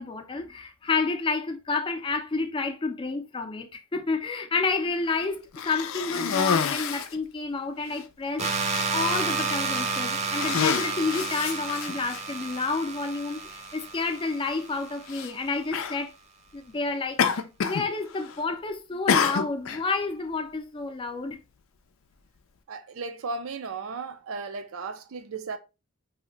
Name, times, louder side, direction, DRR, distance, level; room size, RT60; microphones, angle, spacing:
voice 1, 0.0-8.5 8.9-16.1 16.5-21.4, left 3 dB, 25° left, 0.4 m, -30 dB
Cough, 5.5-7.2 7.9-8.0 8.4-8.9 9.6-9.9 10.3-12.2 13.1-13.2 15.1-15.3 15.7-16.0 17.2-17.9 18.1-18.5 19.1-19.8, left 6 dB, 85° left, 0.4 m, -28 dB
sound 1, 8.4-15.2, right 4 dB, 35° right, 0.5 m, -31 dB
voice 2, 22.7-25.6, right 4 dB, 80° right, 0.5 m, -35 dB
2.7 x 2.1 x 3.8 m
head